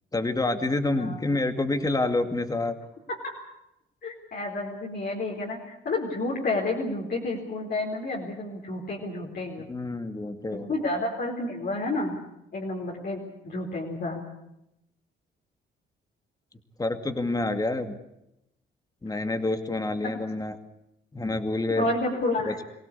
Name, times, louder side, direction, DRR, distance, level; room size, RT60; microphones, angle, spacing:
voice 1, 0.1-2.8 9.7-10.7 16.8-18.0 19.0-20.6 21.1-21.9 22.5-22.6, left 2 dB, 20° left, 8 dB, 2.3 m, -27 dB
voice 2, 4.0-9.7 10.5-12.1 12.5-14.2 21.7-22.5, left 2 dB, 50° left, -3 dB, 4.3 m, -30 dB
24.5 x 17.0 x 8.5 m, 0.84 s
cardioid pair, 90°, 20 cm